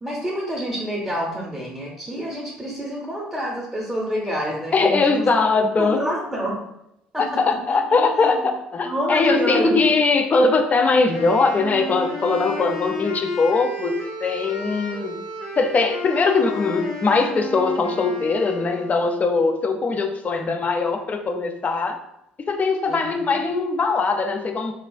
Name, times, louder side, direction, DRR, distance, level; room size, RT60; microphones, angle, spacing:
voice 1, 0.0-5.3 5.5-6.6 7.1-7.4 7.9-8.5 8.8-9.8 20.3-20.5 22.8-23.1, equal, 5° right, -4 dB, 0.7 m, -28 dB
voice 2, 4.7-6.0 7.2-15.2 15.6-22.0 22.5-24.7, left 4 dB, 35° left, 5 dB, 0.4 m, -21 dB
Wind instrument woodwind instrument, 11.1-19.2, left 1 dB, 65° left, 1.3 m, -33 dB
3.3 x 2.3 x 2.2 m, 0.83 s
hypercardioid pair, 55°, 5 cm